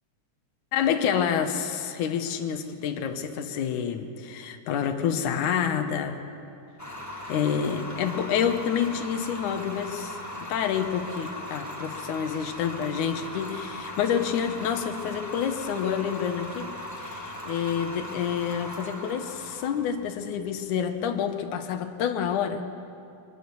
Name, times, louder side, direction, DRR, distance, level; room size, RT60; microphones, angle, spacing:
voice 1, 0.7-6.2 7.3-10.2 10.5-22.6, left 8 dB, 80° left, 6 dB, 2.6 m, -28 dB
sound 1, 6.8-21.7, left 1 dB, 10° left, 0.9 m, -39 dB
24.0 x 20.0 x 7.1 m, 2.5 s
omnidirectional pair, 3.5 m